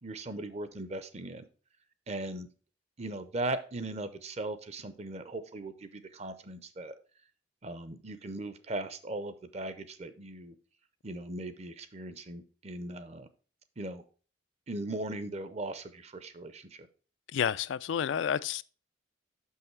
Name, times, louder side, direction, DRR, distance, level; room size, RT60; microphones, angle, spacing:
voice 1, 0.0-1.5 2.1-2.5 3.0-7.0 7.6-10.6 11.0-13.3 13.8-14.0 14.7-16.9, right 2 dB, 35° right, 0.6 m, -38 dB
voice 2, 17.3-18.6, left 8 dB, 80° left, 0.3 m, -30 dB
6.2 x 5.6 x 4.5 m
head